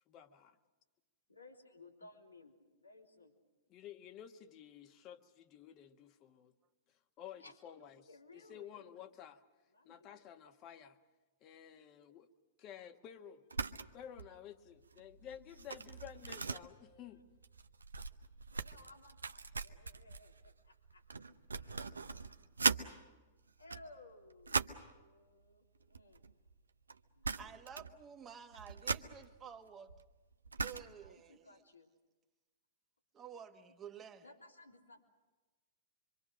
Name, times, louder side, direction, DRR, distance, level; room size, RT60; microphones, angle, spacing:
voice 1, 0.1-0.6 3.7-6.5 7.2-8.1 8.3-9.4 9.8-11.0 11.4-12.3 12.6-13.5 13.9-17.2, left 9 dB, 35° left, 8 dB, 1.6 m, -52 dB
voice 2, 1.3-3.3 7.4-7.6 8.1-8.9 9.7-10.3 13.6-14.0 16.4-17.1 18.5-22.4 23.6-26.3 27.1-27.5 31.0-31.9 33.6-33.7 34.2-35.0, left 2 dB, 90° left, 0 dB, 3.5 m, -60 dB
sound 1, 13.5-13.9 14.2-14.4 14.8-22.9 23.5-24.9 25.8-26.6 26.9-27.0 27.2-28.0 28.3-31.1, right 4 dB, 80° right, 0.8 m, -40 dB
voice 3, 27.4-29.9 30.6-31.6 33.1-34.2, right 8 dB, 20° right, 6 dB, 1.5 m, -52 dB
25.0 x 25.0 x 6.4 m, 1.2 s
figure-of-eight pair, 105°, 0 cm